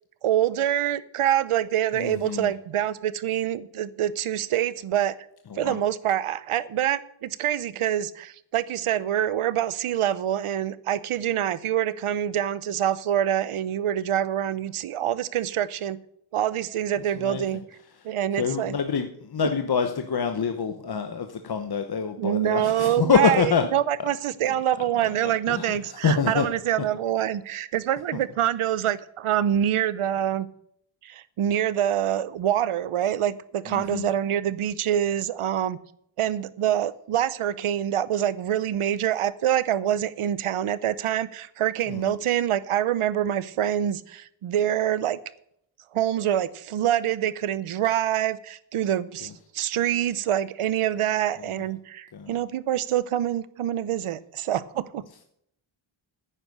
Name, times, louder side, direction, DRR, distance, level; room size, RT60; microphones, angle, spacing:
voice 1, 0.2-5.1 5.6-16.0 16.3-17.6 18.0-18.7 22.2-30.5 31.0-35.8 36.2-45.2 45.9-55.0, right 11 dB, 80° right, 17 dB, 0.8 m, -25 dB
voice 2, 1.9-2.5 5.5-5.8 17.1-17.6 17.9-23.7 24.0-24.1 25.0-26.5 33.7-34.1 41.9-42.2 49.2-49.3 51.4-51.5 52.1-52.4, left 6 dB, 50° left, 7 dB, 1.0 m, -26 dB
10.0 x 9.7 x 6.5 m, 0.72 s
wide cardioid pair, 90°, 50 cm